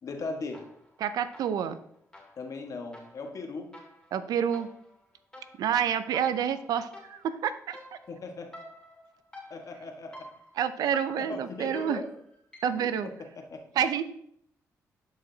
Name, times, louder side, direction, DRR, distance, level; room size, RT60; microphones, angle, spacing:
voice 1, 0.0-0.6 2.4-3.7 8.1-8.5 9.5-10.2 11.2-12.2 12.7-13.1 13.5-13.6, left 3 dB, 60° left, 3 dB, 1.3 m, -38 dB
sound 1, 0.5-1.0 1.3-12.9, equal, 10° left, 2.3 m, -51 dB
voice 2, 1.0-1.8 4.1-4.7 5.6-7.8 10.6-12.0 12.6-13.1 13.8-14.0, right 8 dB, 80° right, 13 dB, 0.5 m, -28 dB
11.5 x 4.9 x 2.7 m, 0.70 s
cardioid pair, 70°, 7 cm